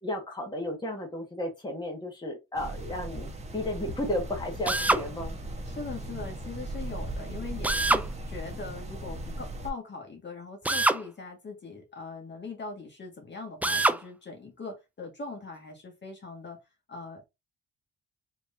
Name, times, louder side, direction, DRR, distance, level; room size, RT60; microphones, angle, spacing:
voice 1, 0.0-5.3, left 1 dB, 15° left, 1.6 m, -33 dB
sound 1, 2.5-9.7, right 1 dB, 20° right, 1.2 m, -38 dB
Drill, 4.6-5.1 7.6-8.1 10.6-11.0 13.6-14.0, right 2 dB, 5° right, 0.3 m, -24 dB
voice 2, 5.7-16.6 16.9-17.2, left 4 dB, 35° left, 1.7 m, -41 dB
4.5 x 3.2 x 2.7 m
cardioid pair, 90°, 30 cm